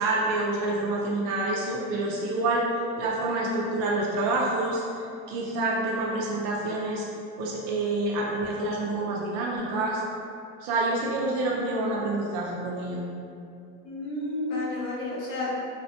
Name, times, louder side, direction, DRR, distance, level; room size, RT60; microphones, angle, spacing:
voice 1, 0.0-2.6 3.0-4.8 5.3-7.0 7.4-10.0 10.6-13.0, right 2 dB, 70° right, -3 dB, 0.5 m, -27 dB
voice 2, 13.8-15.5, left 2 dB, 75° left, -6 dB, 0.9 m, -31 dB
3.2 x 2.1 x 2.8 m, 2.5 s
cardioid pair, 140°, 31 cm